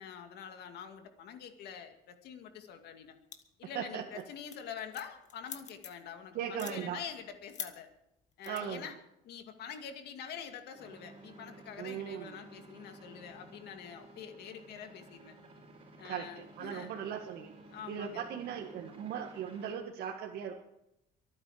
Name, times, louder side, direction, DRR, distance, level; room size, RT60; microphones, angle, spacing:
voice 1, 0.0-3.2 3.6-7.9 8.4-9.0 9.2-15.4 15.9-16.9 17.7-18.2, left 8 dB, 75° left, 6 dB, 2.2 m, -46 dB
sound 1, 3.3-3.7 4.0-4.2 4.5-6.1 6.5-6.8 7.5-7.7 8.4-8.6, left 7 dB, 45° left, 1.7 m, -43 dB
voice 2, 3.6-4.2 6.3-7.0 8.5-8.9 11.8-12.3 16.0-16.3 16.6-17.5 17.9-20.6, right 8 dB, 70° right, 1 dB, 1.7 m, -38 dB
sound 2, 10.7-19.7, right 2 dB, 35° right, 5.7 m, -54 dB
23.5 x 9.6 x 5.0 m, 0.82 s
cardioid pair, 110°, 17 cm